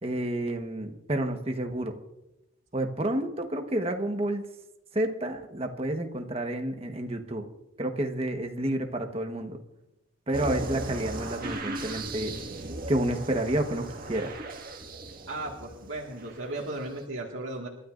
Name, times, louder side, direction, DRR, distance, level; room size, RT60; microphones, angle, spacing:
voice 1, 0.0-2.0 2.7-4.4 4.9-7.5 7.8-9.6 10.3-12.4 12.9-14.3, right 1 dB, 30° right, 5 dB, 1.3 m, -30 dB
sound 1, 10.3-16.9, right 2 dB, 45° right, 1.9 m, -37 dB
voice 2, 15.3-17.7, right 2 dB, 75° right, -3 dB, 2.0 m, -36 dB
29.0 x 13.0 x 2.6 m, 0.91 s
head